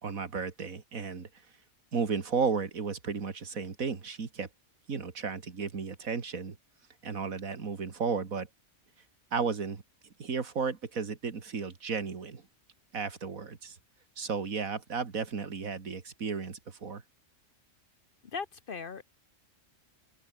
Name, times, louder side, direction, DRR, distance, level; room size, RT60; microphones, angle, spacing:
voice 1, 0.0-1.3 1.9-4.5 4.9-6.6 7.0-8.5 9.3-9.8 10.2-12.5 12.9-13.8 14.2-17.0, right 5 dB, 90° right, 2.5 m, -33 dB
voice 2, 18.2-19.0, left 5 dB, 45° left, 0.9 m, -38 dB
omnidirectional pair, 1.4 m